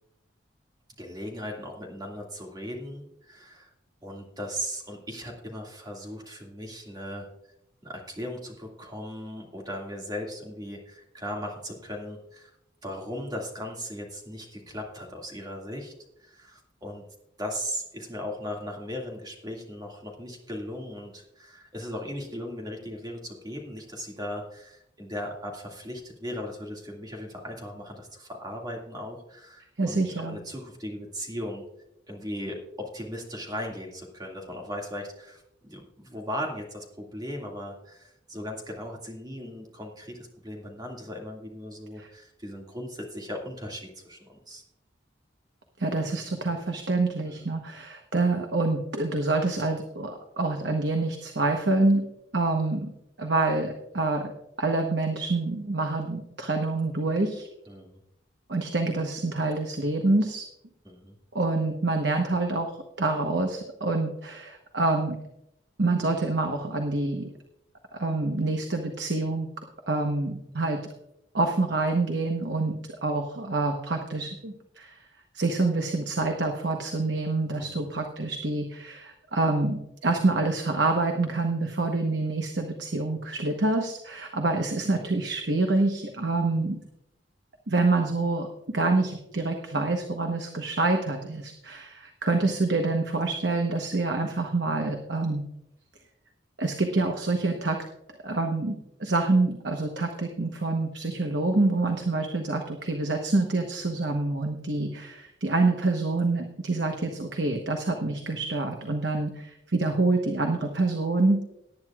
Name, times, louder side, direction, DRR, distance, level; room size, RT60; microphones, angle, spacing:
voice 1, 1.0-3.7 4.0-7.3 7.8-12.5 12.8-15.9 16.2-17.0 17.4-31.6 32.1-44.6 47.3-47.5 57.7-58.0 60.8-61.2 77.6-77.8, equal, 20° right, 0 dB, 2.1 m, -37 dB
voice 2, 29.8-30.4 42.0-42.1 45.8-52.0 52.3-52.9 53.2-54.3 54.6-57.5 58.5-60.4 61.3-62.7 63.0-65.2 65.8-67.3 67.9-69.5 69.9-70.8 71.3-72.7 73.0-75.0 75.3-86.8 87.7-95.4 96.6-97.8 98.2-111.4, right 2 dB, 60° right, 4 dB, 1.1 m, -26 dB
18.5 x 9.8 x 2.4 m, 0.83 s
head